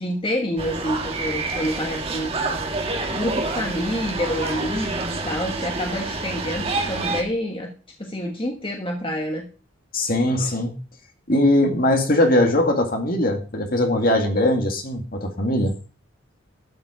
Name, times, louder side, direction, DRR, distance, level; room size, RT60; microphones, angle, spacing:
voice 1, 0.0-2.3 3.1-7.7 8.0-9.4, equal, 25° left, 1.4 m, -27 dB
sound 1, 0.6-7.2, right 3 dB, 30° right, 1.6 m, -28 dB
voice 2, 9.9-10.7 11.3-15.7, left 1 dB, 45° left, 2.2 m, -20 dB
12.5 x 7.5 x 5.1 m
head